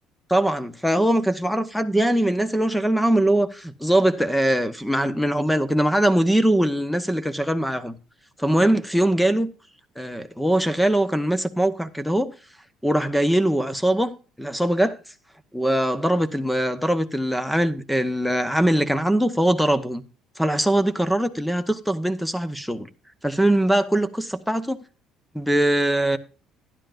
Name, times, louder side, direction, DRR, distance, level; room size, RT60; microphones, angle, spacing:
voice 1, 0.3-8.0 8.4-9.5 10.0-12.3 12.8-15.0 15.5-20.0 20.4-22.9 23.2-24.8 25.3-26.2, right 1 dB, ahead, 0.9 m, -22 dB
12.0 x 10.5 x 2.5 m
supercardioid pair, 85°, 0 cm